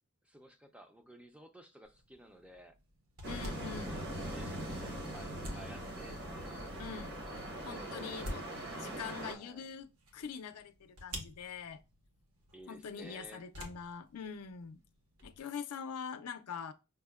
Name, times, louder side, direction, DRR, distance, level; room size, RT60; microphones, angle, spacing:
voice 1, 0.3-2.7 3.5-6.6 7.7-8.2 9.1-9.7 12.5-13.4, right 1 dB, 5° right, 0.4 m, -54 dB
sound 1, 1.8-15.4, equal, 70° right, 1.0 m, -51 dB
sound 2, 3.2-9.3, right 1 dB, 50° right, 0.9 m, -41 dB
voice 2, 3.3-4.1 6.8-7.2 7.6-8.5 8.8-11.8 12.7-14.8 15.2-16.7, left 6 dB, 75° left, 0.5 m, -44 dB
5.3 x 2.1 x 2.2 m
head